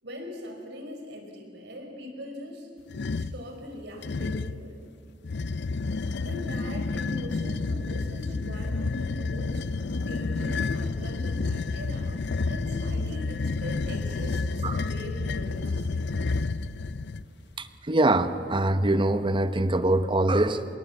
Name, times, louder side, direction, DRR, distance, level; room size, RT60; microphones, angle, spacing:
voice 1, 0.0-2.7 3.1-4.8 6.2-9.6 9.9-16.5, left 1 dB, 65° right, 3 dB, 5.2 m, -41 dB
sound 1, 2.9-3.4 4.0-4.6 5.2-17.2, left 3 dB, 65° left, 0.6 m, -30 dB
voice 2, 17.6-20.7, right 2 dB, 25° right, 11 dB, 1.0 m, -24 dB
26.0 x 23.0 x 8.4 m, 2.5 s
head